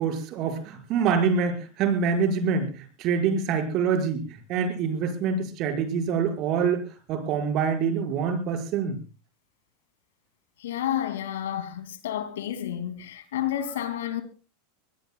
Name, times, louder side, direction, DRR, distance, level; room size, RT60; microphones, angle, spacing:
voice 1, 0.0-9.0, right 6 dB, 45° right, 5.8 m, -26 dB
voice 2, 10.6-14.2, left 11 dB, 70° left, 2.6 m, -30 dB
24.5 x 20.5 x 2.4 m
hypercardioid pair, 90°, 0 cm